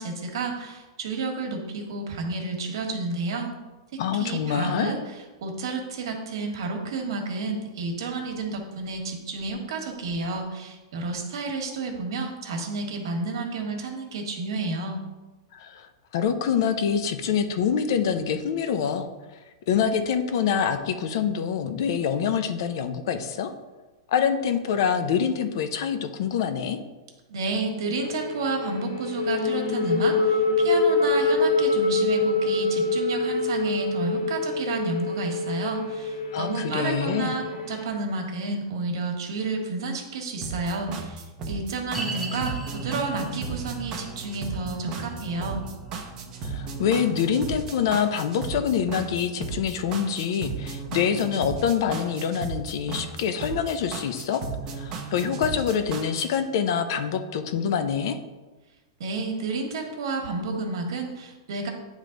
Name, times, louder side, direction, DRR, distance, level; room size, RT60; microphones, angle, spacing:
voice 1, 0.0-3.5 3.9-5.0 5.4-15.0 27.3-45.6 59.0-61.7, right 3 dB, 70° right, 3 dB, 1.4 m, -31 dB
voice 2, 4.0-4.9 15.5-19.1 19.7-23.5 24.1-26.8 36.3-37.3 46.4-54.4 54.7-58.2, left 7 dB, 60° left, 8 dB, 0.6 m, -25 dB
sound 1, 27.9-37.8, left 3 dB, 90° left, 1.0 m, -25 dB
sound 2, 40.4-56.4, right 4 dB, 30° right, 0.9 m, -35 dB
sound 3, 41.9-53.2 53.5-53.6 54.2-54.3, right 3 dB, 5° left, 0.7 m, -41 dB
9.4 x 3.2 x 3.8 m, 1.2 s
supercardioid pair, 150°, 2 cm